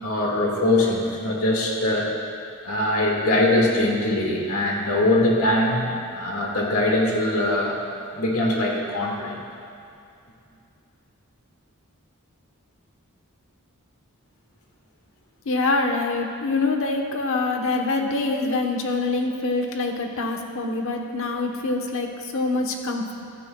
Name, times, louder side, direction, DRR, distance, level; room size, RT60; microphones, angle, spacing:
voice 1, 0.0-2.1 2.6-7.8 8.1-9.3, left 1 dB, 85° left, -2 dB, 2.0 m, -22 dB
voice 2, 15.4-23.1, left 3 dB, 65° left, 2 dB, 1.1 m, -25 dB
15.5 x 12.5 x 2.3 m, 2.5 s
head